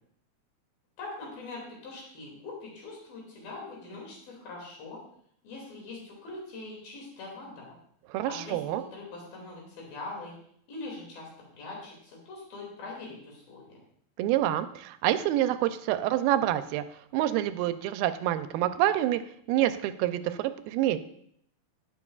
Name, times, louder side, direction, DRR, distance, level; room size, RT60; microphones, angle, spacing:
voice 1, 1.0-5.0 5.4-7.8 8.3-10.4 10.7-11.3 11.6-13.8, left 3 dB, 75° left, -2 dB, 4.3 m, -42 dB
voice 2, 8.1-8.8 14.2-16.8 17.1-19.2 19.5-21.0, right 13 dB, 85° right, 11 dB, 2.4 m, -27 dB
18.0 x 6.7 x 2.4 m, 0.66 s
omnidirectional pair, 4.2 m